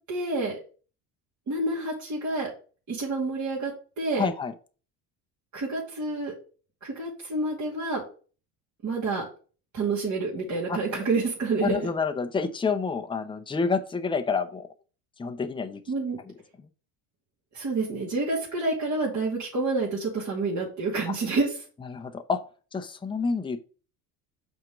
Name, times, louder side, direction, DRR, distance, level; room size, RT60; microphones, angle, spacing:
voice 1, 0.1-0.6 1.5-2.5 2.9-3.7 4.0-4.3 5.5-6.3 6.8-8.0 8.8-9.2 9.7-11.9 15.9-16.2 17.5-21.5, right 3 dB, 45° right, -5 dB, 2.5 m, -28 dB
voice 2, 4.2-4.5 10.7-10.8 11.6-14.7 15.2-15.8 16.2-16.3 21.1-21.2 21.8-22.4 22.7-23.6, left 5 dB, 10° left, 6 dB, 0.7 m, -28 dB
5.9 x 3.7 x 6.1 m, 0.38 s
supercardioid pair, 100°, 41 cm